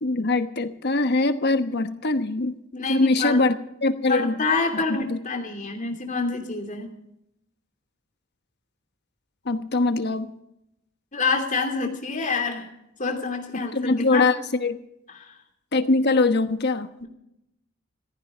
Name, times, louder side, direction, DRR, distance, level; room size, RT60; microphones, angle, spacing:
voice 1, 0.0-2.6 2.9-3.5 3.8-4.4 5.0-5.2 9.4-10.3 13.5-14.8 15.7-16.9, left 3 dB, 55° left, 10 dB, 1.1 m, -22 dB
voice 2, 2.7-3.4 4.1-6.9 11.1-12.7 13.0-14.3 15.1-15.4 17.0-17.1, left 4 dB, 40° left, 3 dB, 2.9 m, -27 dB
15.0 x 15.0 x 5.1 m, 0.80 s
head